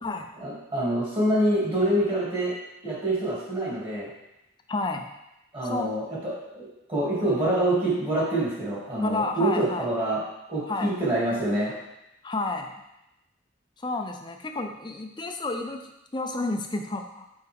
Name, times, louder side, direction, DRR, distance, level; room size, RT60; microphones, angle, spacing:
voice 1, 0.4-2.5 2.8-4.1 5.5-10.2 10.5-11.7, right 1 dB, 25° right, -7 dB, 2.5 m, -26 dB
voice 2, 4.7-5.1 5.6-5.9 9.0-9.9 10.7-10.9 12.2-12.7 13.8-17.3, left 2 dB, 20° left, 4 dB, 0.5 m, -31 dB
6.6 x 5.2 x 3.6 m, 0.89 s
head